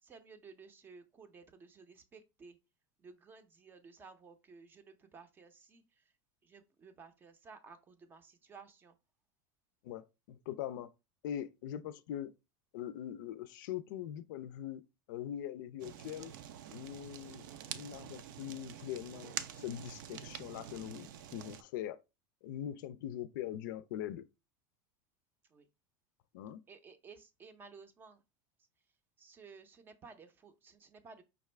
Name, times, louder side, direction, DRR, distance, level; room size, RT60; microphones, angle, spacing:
voice 1, 0.0-2.6 3.0-6.1 6.4-9.0 22.7-22.8 25.5-25.7 26.7-28.2 29.2-31.2, right 5 dB, 20° right, 0.5 m, -56 dB
voice 2, 9.8-10.9 11.2-12.3 12.7-14.8 15.1-16.3 16.7-22.0 22.4-24.2 26.3-26.6, left 11 dB, 75° left, 0.4 m, -42 dB
Fire, 15.8-21.6, right 10 dB, 75° right, 0.5 m, -46 dB
5.2 x 2.4 x 3.2 m
supercardioid pair, 160°, 11 cm